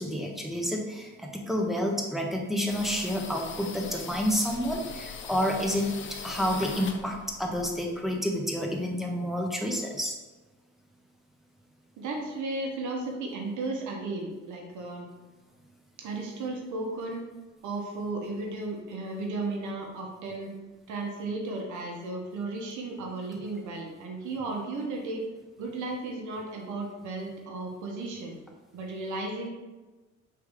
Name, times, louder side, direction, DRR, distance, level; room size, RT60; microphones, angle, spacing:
voice 1, 0.0-5.9 6.2-10.1, equal, ahead, 0 dB, 0.8 m, -29 dB
sound 1, 2.7-8.1, left 6 dB, 40° left, 0.5 m, -41 dB
voice 2, 12.0-15.1 16.0-17.2 17.6-20.5 20.9-25.2 25.6-28.4 28.7-29.5, right 2 dB, 75° right, 1 dB, 0.9 m, -34 dB
4.8 x 3.0 x 3.5 m, 1.2 s
cardioid pair, 90°, 30 cm